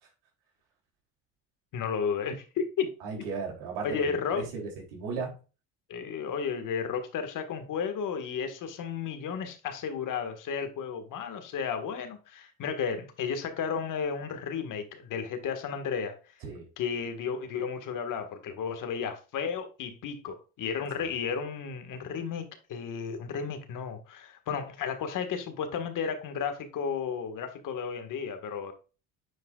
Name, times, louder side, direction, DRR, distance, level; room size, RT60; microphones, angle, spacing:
voice 1, 1.7-2.9 3.8-4.4 5.9-16.2 16.8-28.7, left 6 dB, 60° left, 1.7 m, -33 dB
voice 2, 3.0-5.3 16.4-16.7 21.0-21.1, right 5 dB, 85° right, 3.1 m, -36 dB
9.4 x 4.7 x 2.4 m
supercardioid pair, 85°, 36 cm